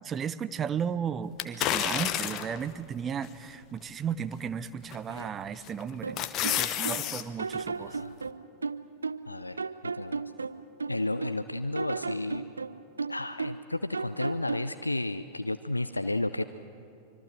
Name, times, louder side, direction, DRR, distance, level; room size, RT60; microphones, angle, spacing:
voice 1, 0.0-8.0, right 7 dB, 25° right, 15 dB, 0.8 m, -34 dB
sound 1, 1.4-2.6 3.2-3.3 4.9-5.2 5.7-7.2 7.6-7.7, left 11 dB, 35° left, 1.1 m, -30 dB
sound 2, 6.0-7.0 7.4-9.3 9.6-11.4 11.7-13.7 13.9-14.7, right 4 dB, 75° right, 0.6 m, -35 dB
voice 2, 7.8-8.1 9.3-9.6 9.8-10.2 10.9-12.4 13.1-16.4, left 2 dB, 85° left, 12 dB, 0.5 m, -32 dB
25.0 x 23.0 x 7.8 m, 2.7 s
figure-of-eight pair, 90°, 0 cm